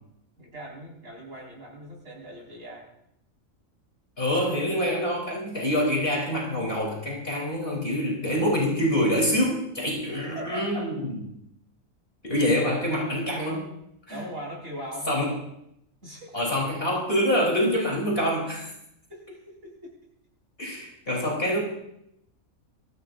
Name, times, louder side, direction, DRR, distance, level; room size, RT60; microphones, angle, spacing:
voice 1, 0.4-2.9 10.1-10.8 14.1-15.2 16.0-16.5 16.9-17.0 19.1-19.9, equal, 70° right, -4 dB, 5.8 m, -40 dB
voice 2, 4.2-11.1 12.2-13.7 14.1-14.2 15.1-15.3 16.3-18.7 20.6-21.6, equal, 40° left, -3 dB, 4.0 m, -26 dB
23.0 x 15.0 x 2.6 m, 0.77 s
omnidirectional pair, 1.4 m